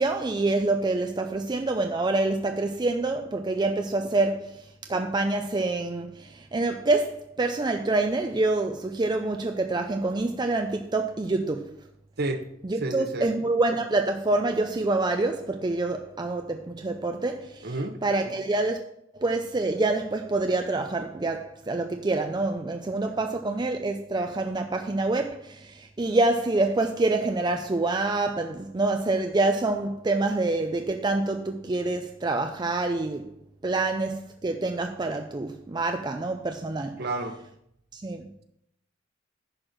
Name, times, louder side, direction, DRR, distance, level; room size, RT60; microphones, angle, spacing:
voice 1, 0.0-4.6 4.9-11.7 12.7-17.7 18.0-18.8 19.1-33.3 33.6-37.0 37.9-38.3, right 2 dB, 20° right, 0.4 m, -26 dB
voice 2, 12.8-13.3 17.6-18.0 37.0-37.4, right 2 dB, 55° right, 1.0 m, -30 dB
10.5 x 4.5 x 6.5 m
head